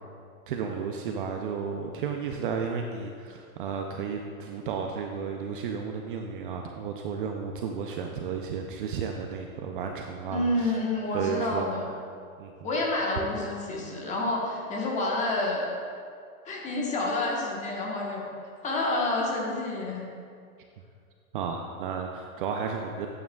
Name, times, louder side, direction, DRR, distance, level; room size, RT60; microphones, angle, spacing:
voice 1, 0.5-10.7 11.1-11.7 12.4-12.7 21.3-23.1, right 6 dB, 40° right, 3 dB, 0.5 m, -33 dB
voice 2, 10.3-11.9 12.6-15.7 16.4-18.3 18.6-20.0, left 2 dB, 15° left, -2 dB, 1.1 m, -29 dB
10.5 x 8.8 x 2.3 m, 2.3 s
hypercardioid pair, 145°, 43 cm